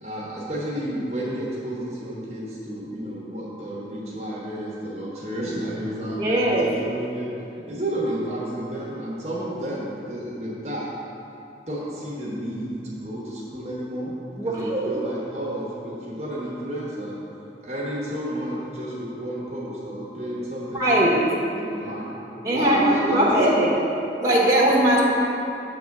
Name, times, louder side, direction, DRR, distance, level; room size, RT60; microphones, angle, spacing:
voice 1, 0.0-7.3 7.7-10.9 11.7-14.1 14.4-17.2 17.6-21.1 21.5-22.1 22.4-23.7 24.8-24.9, right 1 dB, 40° right, -6 dB, 1.1 m, -31 dB
voice 2, 6.2-6.7 14.4-14.9 20.7-21.1 22.4-23.8 24.2-25.1, right 1 dB, 20° right, -6 dB, 1.2 m, -20 dB
7.7 x 3.5 x 6.5 m, 2.8 s
head